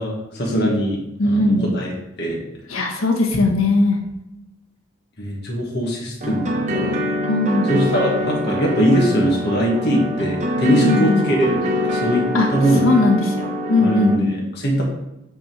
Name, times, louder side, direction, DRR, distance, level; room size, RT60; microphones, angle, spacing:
voice 1, 0.0-1.9 2.2-2.4 5.2-7.0 7.7-12.2 12.5-12.9 13.8-14.8, right 1 dB, 55° left, -2 dB, 1.6 m, -21 dB
voice 2, 1.2-1.7 2.7-4.0 7.3-7.7 10.6-11.2 12.3-12.5 12.8-14.4, left 2 dB, 85° left, 2 dB, 1.4 m, -18 dB
sound 1, 6.2-14.2, left 1 dB, 35° right, 0.9 m, -24 dB
8.4 x 3.6 x 4.7 m, 0.90 s
head